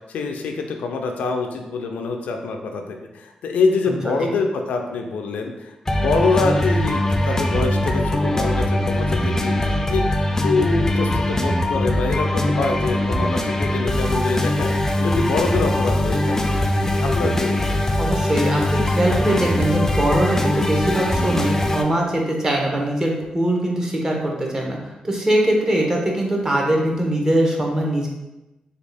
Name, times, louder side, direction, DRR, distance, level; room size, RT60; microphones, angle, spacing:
voice 1, 0.1-9.5 9.9-10.0 10.4-16.5 16.8-17.8, left 3 dB, 90° left, 3 dB, 0.4 m, -25 dB
sound 1, 5.9-21.8, left 1 dB, 20° left, 0.4 m, -21 dB
voice 2, 18.0-28.1, right 1 dB, 25° right, 0 dB, 0.8 m, -22 dB
3.4 x 2.3 x 3.3 m, 1.0 s
cardioid pair, 75°, 2 cm